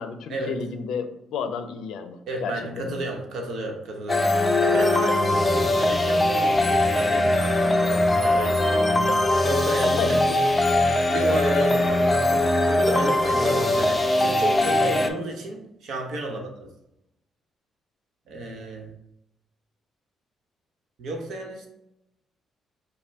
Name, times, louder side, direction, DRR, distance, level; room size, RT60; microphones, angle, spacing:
voice 1, 0.0-3.0 9.8-10.4, left 6 dB, 80° left, 9 dB, 0.5 m, -32 dB
voice 2, 2.3-10.3 11.1-16.7 18.3-18.9 21.0-21.7, right 2 dB, 75° right, 1 dB, 1.0 m, -32 dB
sound 1, 4.1-15.1, left 1 dB, 20° left, 0.6 m, -21 dB
5.4 x 2.2 x 4.1 m, 0.83 s
cardioid pair, 90°, 0 cm